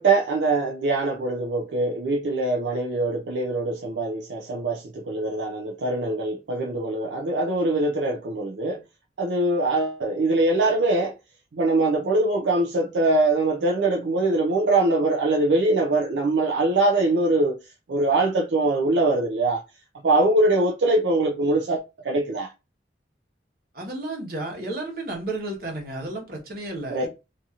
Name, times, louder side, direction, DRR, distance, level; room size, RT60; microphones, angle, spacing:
voice 1, 0.0-8.8 9.2-11.1 11.5-17.6 17.9-19.6 20.0-22.5 26.9-27.1, right 2 dB, 80° right, 0.4 m, -23 dB
voice 2, 23.7-27.1, right 2 dB, 55° right, 1.1 m, -32 dB
2.8 x 2.7 x 2.4 m
head